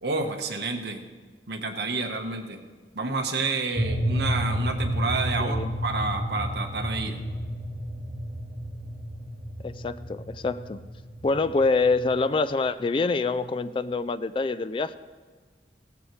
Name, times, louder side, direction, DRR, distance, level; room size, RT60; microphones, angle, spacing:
voice 1, 0.0-1.0 1.5-2.6 2.9-7.2, right 3 dB, 65° right, 4 dB, 1.3 m, -29 dB
sound 1, 3.7-12.3, equal, 30° right, 3.6 m, -31 dB
voice 2, 5.4-5.7 9.6-10.8 11.2-15.0, left 3 dB, 30° left, 13 dB, 0.3 m, -26 dB
17.0 x 14.0 x 3.2 m, 1.5 s
head